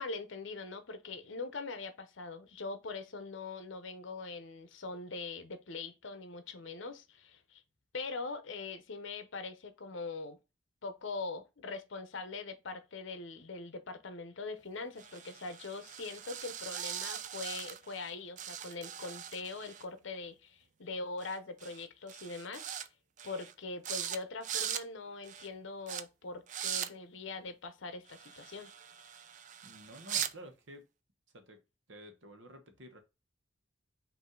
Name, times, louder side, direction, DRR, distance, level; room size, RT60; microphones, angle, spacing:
voice 1, 0.0-7.6 7.9-10.4 10.8-22.7 23.2-28.7, left 3 dB, 65° left, 0.7 m, -42 dB
sound 1, 15.0-18.1 18.4-19.8 21.2-21.4 21.6-21.8 22.1-22.9 23.2-23.5 23.8-24.2 24.4-24.8 25.2-25.5 25.9-26.0 26.5-26.9 28.1-30.3, right 9 dB, 35° right, 0.3 m, -40 dB
voice 2, 29.6-30.8 31.3-31.6 31.9-33.0, equal, 65° right, 1.0 m, -51 dB
5.4 x 2.7 x 3.7 m
head